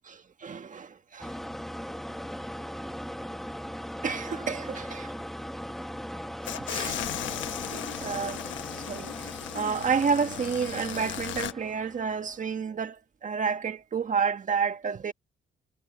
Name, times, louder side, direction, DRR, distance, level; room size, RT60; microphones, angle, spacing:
voice 1, 0.1-1.3 4.0-5.1 6.7-7.0 7.7-8.4 8.8-15.1, right 6 dB, 40° right, 1.8 m, -30 dB
sound 1, 1.2-12.4, equal, ahead, 1.5 m, -39 dB
sound 2, 6.4-11.5, left 11 dB, 70° left, 1.2 m, -36 dB
cardioid pair, 90°, 20 cm